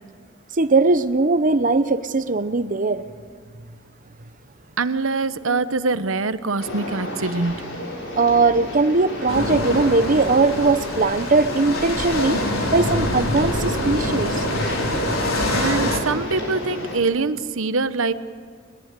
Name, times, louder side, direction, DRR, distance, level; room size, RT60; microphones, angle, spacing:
voice 1, 0.5-3.0 8.2-14.4, right 3 dB, 40° right, 11 dB, 0.9 m, -20 dB
voice 2, 4.8-7.6 15.5-18.1, right 3 dB, 70° right, 12 dB, 1.0 m, -24 dB
sound 1, 6.6-17.0, left 1 dB, 65° left, 6.7 m, -32 dB
sound 2, 9.3-16.0, left 1 dB, 80° left, 4.1 m, -25 dB
21.5 x 20.5 x 8.3 m, 2.1 s
head